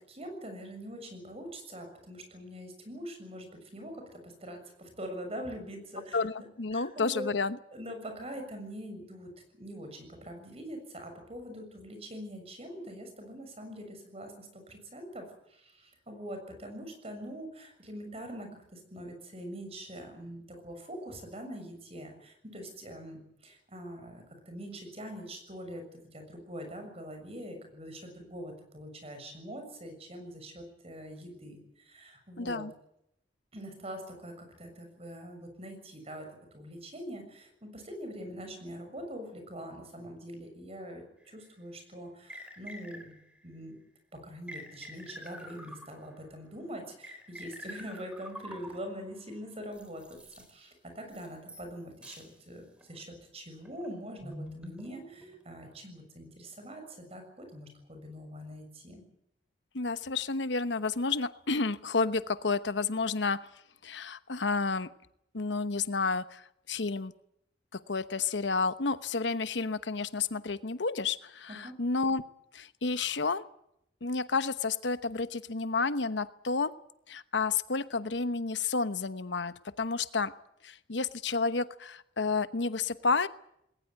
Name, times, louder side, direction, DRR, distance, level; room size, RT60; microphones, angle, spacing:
voice 1, 0.0-7.3 7.7-32.6 33.5-43.2 43.4-43.8 44.1-50.2 50.5-59.0 71.5-71.8, equal, 35° right, 6 dB, 6.8 m, -44 dB
voice 2, 6.1-7.6 32.4-32.7 59.7-63.5 63.8-64.9 65.3-66.4 66.7-67.1 67.9-72.2 72.5-73.4 74.0-76.7 77.1-80.3 80.6-83.3, left 4 dB, 80° left, 13 dB, 1.0 m, -30 dB
sound 1, 41.3-41.4 42.3-43.4 44.5-46.3 47.0-49.1 49.7-50.5 51.1-51.8 52.0-52.3 52.8-53.0 53.6-55.6, equal, 5° right, 3.8 m, -46 dB
20.5 x 19.0 x 9.4 m, 0.76 s
head